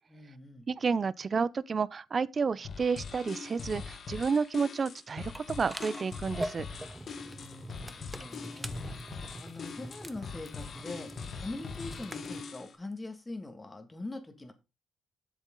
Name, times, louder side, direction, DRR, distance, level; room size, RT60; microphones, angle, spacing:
voice 1, 0.1-0.7 7.3-8.9 9.4-11.1 11.4-14.5, left 2 dB, 20° left, 1.7 m, -43 dB
voice 2, 0.7-6.7, right 5 dB, 40° right, 0.4 m, -30 dB
sound 1, 2.6-12.7, left 5 dB, 50° left, 1.3 m, -42 dB
sound 2, 5.3-12.4, right 1 dB, 10° right, 0.8 m, -43 dB
7.7 x 7.2 x 3.7 m
cardioid pair, 90°, 0 cm